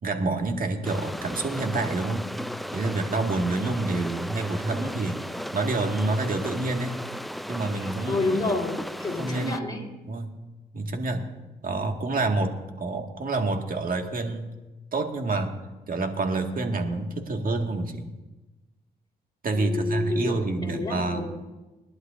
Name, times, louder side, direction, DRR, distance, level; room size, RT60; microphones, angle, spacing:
voice 1, 0.0-2.3 2.7-5.2 5.5-7.0 7.5-8.6 9.2-9.7 10.1-10.3 10.7-11.3 11.6-14.5 14.9-15.5 15.9-18.1 19.4-21.3, right 2 dB, 50° right, 3 dB, 1.9 m, -28 dB
sound 1, 0.8-9.6, equal, ahead, 0.5 m, -35 dB
voice 2, 8.1-9.8 19.5-21.5, left 2 dB, 25° left, -1 dB, 4.1 m, -29 dB
21.5 x 11.5 x 2.6 m, 1.1 s
cardioid pair, 60°, 18 cm